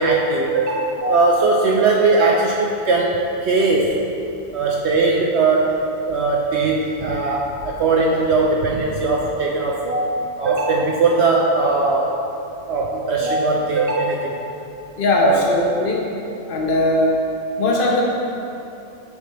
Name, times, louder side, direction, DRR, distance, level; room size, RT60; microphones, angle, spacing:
voice 1, 0.0-4.0 4.5-5.7 6.0-12.1 12.7-14.3 15.2-15.4, right 3 dB, 65° right, -2 dB, 0.7 m, -19 dB
voice 2, 15.0-16.1 16.5-17.1 17.6-18.0, left 2 dB, 45° left, -2 dB, 0.9 m, -19 dB
6.4 x 5.7 x 3.2 m, 2.9 s
omnidirectional pair, 1.6 m